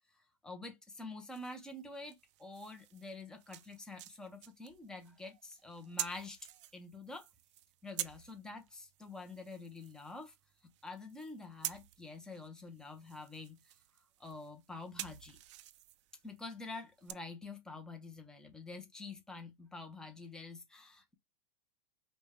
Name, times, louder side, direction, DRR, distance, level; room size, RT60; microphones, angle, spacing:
voice 1, 0.4-6.4 6.7-7.3 7.8-10.3 10.8-13.7 14.2-15.4 16.2-21.1, left 3 dB, 5° left, 0.6 m, -47 dB
sound 1, 1.3-17.1, right 13 dB, 45° right, 0.4 m, -49 dB
5.1 x 2.2 x 3.5 m
supercardioid pair, 160°, 21 cm